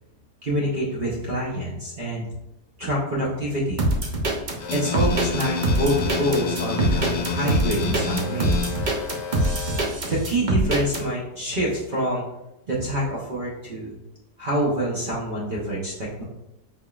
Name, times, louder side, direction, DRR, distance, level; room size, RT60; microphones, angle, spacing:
voice 1, 0.4-2.3 2.8-3.9 4.7-8.7 10.1-12.2 12.7-13.9 14.4-16.2, right 1 dB, 40° right, -5 dB, 0.7 m, -26 dB
sound 1, 3.8-11.0, right 1 dB, 70° right, 0.4 m, -23 dB
sound 2, 4.6-9.9, left 6 dB, 65° left, 0.9 m, -30 dB
5.1 x 3.5 x 2.4 m, 0.91 s
omnidirectional pair, 1.7 m